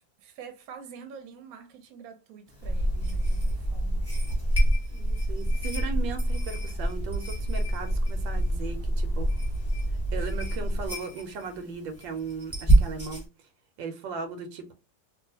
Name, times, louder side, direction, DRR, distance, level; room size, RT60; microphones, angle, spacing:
voice 1, 0.2-4.1 10.2-10.3, right 6 dB, 65° right, 1.0 m, -46 dB
sound 1, 2.5-13.3, right 2 dB, 10° right, 1.0 m, -31 dB
sound 2, 2.6-10.9, equal, 70° left, 0.4 m, -28 dB
voice 2, 4.9-9.3 10.1-13.3 13.8-14.7, right 5 dB, 90° right, 1.4 m, -37 dB
3.0 x 2.5 x 2.7 m
omnidirectional pair, 2.0 m